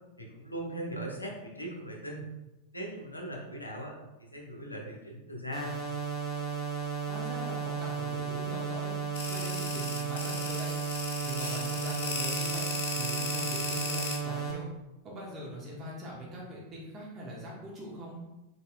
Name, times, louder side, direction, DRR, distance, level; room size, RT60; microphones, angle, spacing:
voice 1, 0.2-2.3 2.7-4.0 4.3-5.7, right 1 dB, 85° left, 0 dB, 0.9 m, -39 dB
sound 1, 5.5-14.5, right 6 dB, 10° left, 1.2 m, -34 dB
voice 2, 7.1-8.9 9.3-10.7 11.2-12.7 13.0-14.7 15.0-18.2, equal, 30° right, -4 dB, 1.1 m, -41 dB
sound 2, 9.1-14.2, left 3 dB, 55° left, 1.0 m, -36 dB
5.5 x 4.1 x 2.3 m, 1.0 s
figure-of-eight pair, 90°, 0 cm